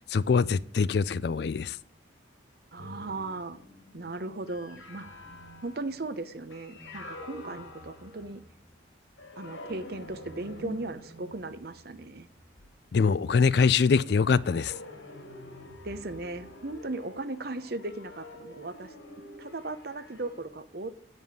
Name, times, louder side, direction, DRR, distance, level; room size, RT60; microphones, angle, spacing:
voice 1, 0.0-1.8 12.9-14.7, left 5 dB, 55° left, 0.4 m, -24 dB
voice 2, 2.7-3.6 3.9-5.2 5.6-8.4 9.4-12.3 15.8-18.9 19.4-20.9, right 2 dB, 50° right, 0.8 m, -37 dB
sound 1, 2.8-8.7 9.2-13.1 13.9-20.4, left 1 dB, 80° left, 2.4 m, -47 dB
9.4 x 5.3 x 6.6 m
head